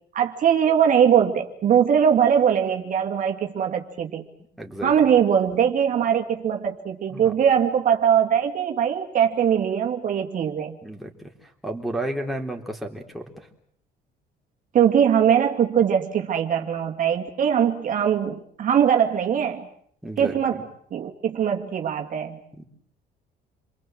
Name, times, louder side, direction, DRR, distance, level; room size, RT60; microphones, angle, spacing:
voice 1, 0.1-4.2 4.8-10.8 14.7-19.7 20.2-20.6 20.9-22.4, right 8 dB, 50° right, 3 dB, 2.5 m, -21 dB
voice 2, 4.6-4.9 7.1-7.3 10.8-13.5 20.0-20.6 22.5-22.7, right 1 dB, ahead, 0 dB, 4.0 m, -33 dB
29.0 x 22.5 x 7.8 m, 0.66 s
cardioid pair, 110°, 17 cm